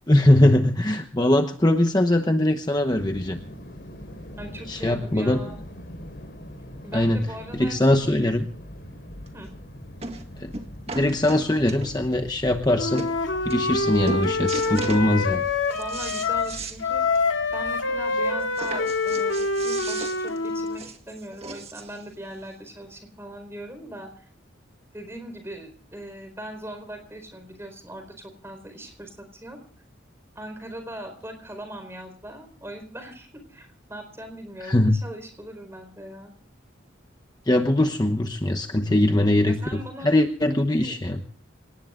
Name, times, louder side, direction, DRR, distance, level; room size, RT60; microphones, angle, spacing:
voice 1, 0.1-3.4 4.7-5.4 6.9-7.2 7.5-8.5 10.4-10.5 10.9-13.0 13.4-15.5 34.6-35.0 37.5-39.6 40.0-41.2, left 1 dB, 20° left, 6 dB, 1.0 m, -21 dB
sound 1, 2.9-20.0, equal, 55° left, 4.8 m, -43 dB
voice 2, 4.4-5.6 6.8-8.3 9.3-9.5 15.7-17.2 17.5-24.3 24.9-29.6 30.3-36.3 39.4-40.1 40.7-41.0, right 1 dB, 15° right, 7 dB, 4.5 m, -40 dB
sound 2, 9.3-9.4 10.0-10.2 10.5-12.1 12.7-12.8 13.0-13.1 13.5-13.8 14.1-15.1 15.5-16.8 17.1-17.2 17.6-17.7 18.5-22.0 22.8-22.9, right 3 dB, 30° right, 1.8 m, -36 dB
Wind instrument woodwind instrument, 12.7-16.5 16.8-20.8, left 3 dB, 85° left, 2.3 m, -26 dB
27.5 x 18.5 x 2.5 m, 0.43 s
head